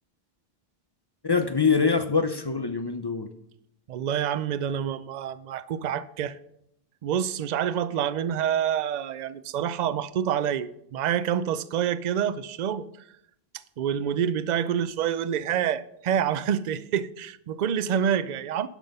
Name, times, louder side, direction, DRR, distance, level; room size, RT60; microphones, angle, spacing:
voice 1, 1.2-3.3, left 5 dB, 35° left, 0.4 m, -24 dB
voice 2, 3.9-6.4 7.0-12.9 13.5-18.7, right 9 dB, 55° right, 0.5 m, -27 dB
10.5 x 6.1 x 5.3 m
omnidirectional pair, 1.0 m